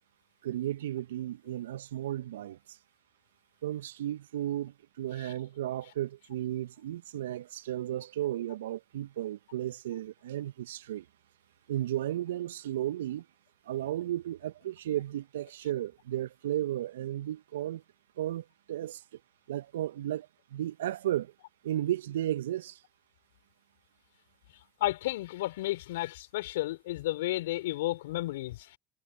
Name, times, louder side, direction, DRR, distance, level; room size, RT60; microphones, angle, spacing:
voice 1, 0.4-2.8 3.6-11.1 11.7-13.3 13.7-17.8 18.2-19.0 19.5-21.3 21.6-22.8, right 13 dB, 75° right, 1.7 m, -34 dB
voice 2, 24.8-28.8, left 17 dB, 75° left, 4.8 m, -32 dB
figure-of-eight pair, 65°, 0 cm